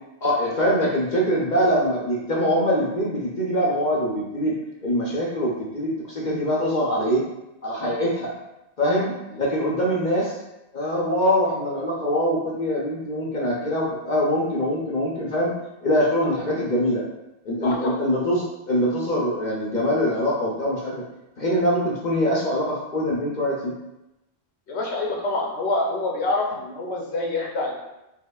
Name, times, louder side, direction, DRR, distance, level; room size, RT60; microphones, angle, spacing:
voice 1, 0.2-4.6 4.8-7.3 7.6-8.3 8.8-10.3 10.7-15.5 15.8-17.0 17.4-21.0 21.4-23.7, equal, 50° left, -4 dB, 0.7 m, -23 dB
voice 2, 17.6-18.0 24.7-27.8, left 2 dB, 85° left, -1 dB, 1.1 m, -26 dB
4.4 x 2.9 x 2.3 m, 0.93 s
omnidirectional pair, 1.1 m